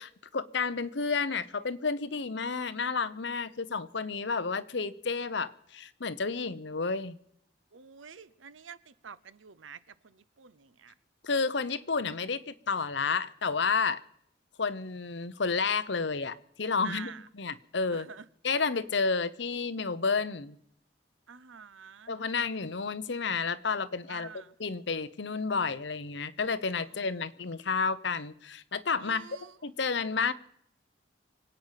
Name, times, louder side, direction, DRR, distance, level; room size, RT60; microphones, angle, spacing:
voice 1, 0.0-7.2 11.2-14.0 14.6-18.1 18.4-20.6 22.1-24.3 24.6-29.3 29.6-30.3, left 4 dB, 65° left, 0.9 m, -31 dB
voice 2, 7.7-10.9 16.8-17.3 17.9-18.2 21.3-22.1 24.1-24.5 29.0-29.6, right 6 dB, 80° right, 0.8 m, -48 dB
25.5 x 8.9 x 5.8 m
head